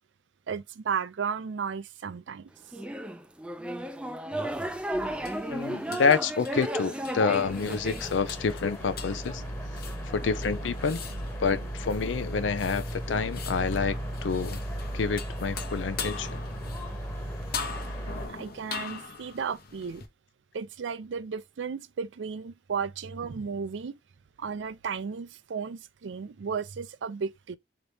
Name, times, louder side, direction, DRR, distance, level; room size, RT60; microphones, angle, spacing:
voice 1, 0.5-2.5 18.3-20.0 20.5-24.0 24.4-27.6, right 6 dB, 80° right, 0.4 m, -34 dB
sound 1, 2.7-8.0, right 1 dB, 5° right, 0.4 m, -33 dB
sound 2, 4.4-20.1, left 5 dB, 55° left, 0.8 m, -42 dB
voice 2, 5.5-9.4 10.0-11.0 11.4-14.6 14.9-16.4, left 5 dB, 80° left, 0.5 m, -28 dB
sound 3, 7.4-18.3, right 1 dB, 15° left, 1.1 m, -36 dB
4.0 x 2.9 x 3.3 m
head